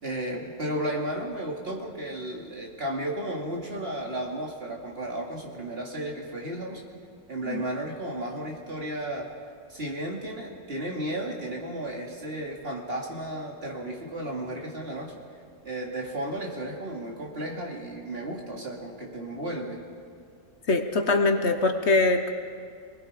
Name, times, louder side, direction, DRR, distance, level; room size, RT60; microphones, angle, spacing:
voice 1, 0.0-6.9 7.3-9.3 9.7-15.2 15.6-19.8, right 1 dB, 50° right, -1 dB, 2.9 m, -33 dB
voice 2, 20.7-22.3, left 3 dB, 60° left, 6 dB, 1.4 m, -23 dB
27.0 x 20.0 x 5.1 m, 2.2 s
omnidirectional pair, 1.3 m